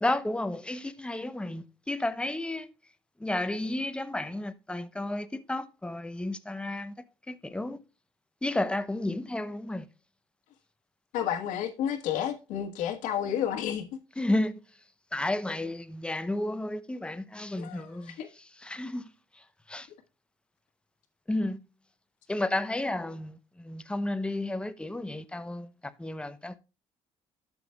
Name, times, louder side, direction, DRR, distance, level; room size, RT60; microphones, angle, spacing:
voice 1, 0.0-2.7 3.2-6.9 7.3-7.8 8.4-9.9 14.2-14.5 15.1-18.2 18.6-19.1 19.7-19.9 21.3-21.6 22.3-25.7 26.0-26.6, left 1 dB, 10° left, 0.8 m, -32 dB
voice 2, 11.1-13.8 17.6-18.3, left 9 dB, 85° left, 1.5 m, -31 dB
12.0 x 7.0 x 2.3 m
cardioid pair, 95°, 13 cm